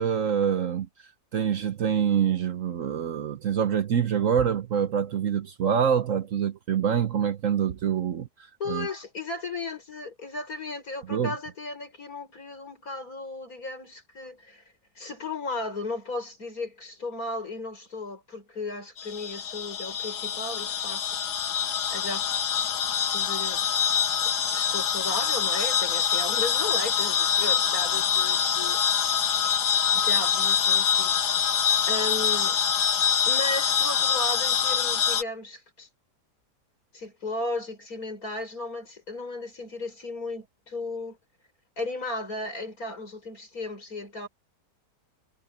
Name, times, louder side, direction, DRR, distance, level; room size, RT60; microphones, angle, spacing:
voice 1, 0.0-8.9 11.1-11.4, right 8 dB, 55° right, 1.1 m, -26 dB
voice 2, 8.6-14.6 15.0-21.2 21.9-22.3 23.1-23.7 24.5-29.2 29.9-31.3 31.9-32.6 33.3-35.9 36.9-41.2 41.8-44.3, left 2 dB, 60° left, 6.0 m, -35 dB
sound 1, 19.0-35.2, left 8 dB, 75° left, 1.6 m, -25 dB
omnidirectional pair, 1.8 m